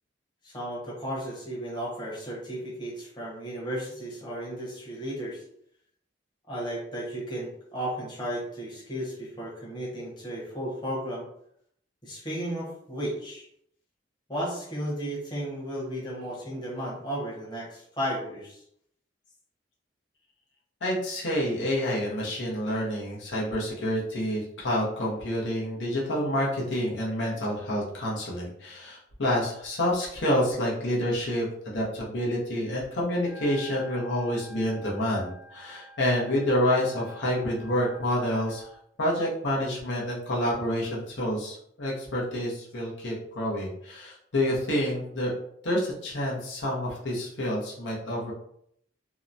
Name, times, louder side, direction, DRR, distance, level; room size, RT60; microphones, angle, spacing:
voice 1, 0.4-5.4 6.5-11.3 12.0-13.5 14.3-18.6, equal, 25° left, -6 dB, 0.9 m, -34 dB
voice 2, 20.8-38.7 39.0-45.3 45.6-48.3, left 1 dB, 80° left, -4 dB, 0.7 m, -28 dB
Wind instrument woodwind instrument, 33.1-38.8, left 1 dB, 15° right, 0.7 m, -49 dB
2.8 x 2.1 x 2.5 m, 0.70 s
head